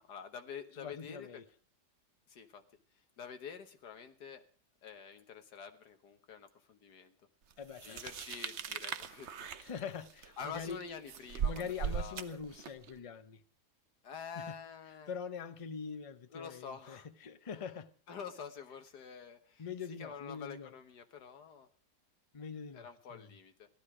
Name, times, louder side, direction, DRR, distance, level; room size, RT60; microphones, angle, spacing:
voice 1, 0.1-1.4 2.3-2.6 3.2-4.4 4.8-7.1 7.8-9.5 10.4-11.7 11.9-12.2 14.0-15.1 16.3-17.1 18.1-19.6 20.0-21.7 22.7-23.7, left 7 dB, 80° left, 1.9 m, -47 dB
voice 2, 0.7-1.5 7.6-8.0 9.6-10.8 11.4-13.4 14.3-14.6 15.1-17.9 19.6-20.7 22.3-23.4, left 6 dB, 35° left, 0.5 m, -43 dB
sound 1, 7.8-12.9, right 8 dB, 55° right, 0.9 m, -39 dB
16.0 x 12.0 x 4.9 m
omnidirectional pair, 1.7 m